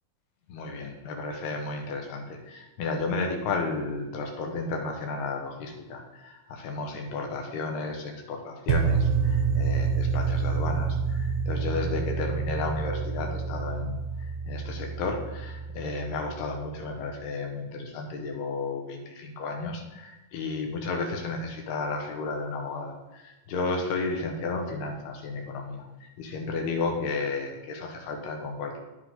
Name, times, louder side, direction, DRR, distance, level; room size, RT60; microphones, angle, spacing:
voice 1, 0.5-28.8, left 3 dB, 90° left, 2 dB, 3.6 m, -33 dB
sound 1, 8.7-16.8, right 5 dB, 80° right, 2.5 m, -28 dB
18.0 x 6.4 x 4.0 m, 1.0 s
omnidirectional pair, 4.5 m